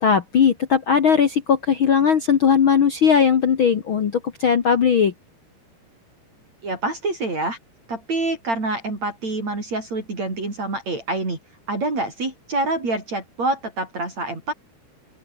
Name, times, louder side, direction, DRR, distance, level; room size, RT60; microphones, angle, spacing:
voice 1, 0.0-5.1, left 7 dB, 75° left, 1.1 m, -18 dB
voice 2, 6.6-7.6 7.9-11.4 11.7-14.5, right 2 dB, 45° right, 7.9 m, -26 dB
open air
omnidirectional pair, 4.5 m